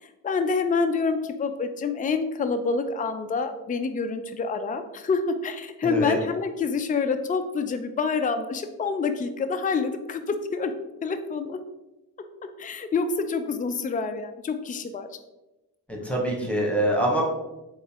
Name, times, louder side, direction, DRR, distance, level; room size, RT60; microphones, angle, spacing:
voice 1, 0.2-10.7 11.0-11.6 12.6-15.1, left 4 dB, 20° left, 8 dB, 0.4 m, -27 dB
voice 2, 5.8-6.2 15.9-17.2, right 1 dB, 5° left, -1 dB, 1.2 m, -25 dB
3.8 x 3.1 x 3.0 m, 0.99 s
cardioid pair, 40°, 41 cm